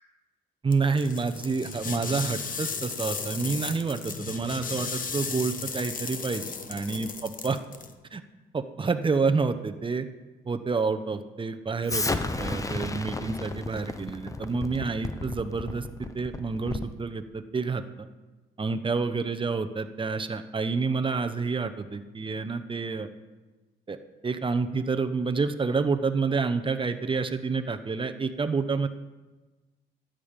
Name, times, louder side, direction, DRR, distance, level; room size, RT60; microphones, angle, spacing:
voice 1, 0.6-6.4 6.7-7.6 8.1-8.2 8.5-10.1 10.4-18.1 18.6-23.1 23.9-24.0 24.2-28.9, right 4 dB, 25° right, 8 dB, 0.9 m, -28 dB
sound 1, 0.7-7.9, left 5 dB, 45° left, 1.1 m, -35 dB
Explosion, 11.9-17.0, left 2 dB, 15° left, 0.8 m, -33 dB
12.5 x 9.0 x 5.3 m, 1.2 s
cardioid pair, 90°, 20 cm